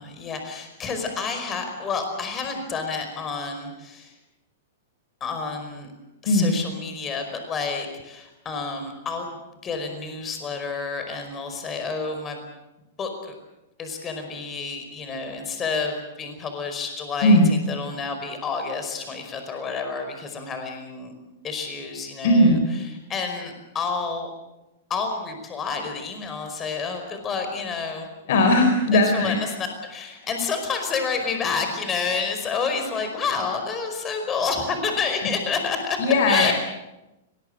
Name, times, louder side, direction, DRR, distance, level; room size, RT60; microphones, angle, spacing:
voice 1, 0.0-4.1 5.2-5.9 6.2-12.4 13.0-13.3 13.8-21.1 21.4-22.6 23.1-24.3 24.9-28.1 28.9-36.0 36.3-36.5, left 5 dB, 20° left, 6 dB, 5.1 m, -29 dB
voice 2, 22.2-22.6 28.3-29.4 36.0-36.5, left 1 dB, 60° left, 4 dB, 4.2 m, -17 dB
23.0 x 20.0 x 7.9 m, 0.97 s
hypercardioid pair, 145°, 0 cm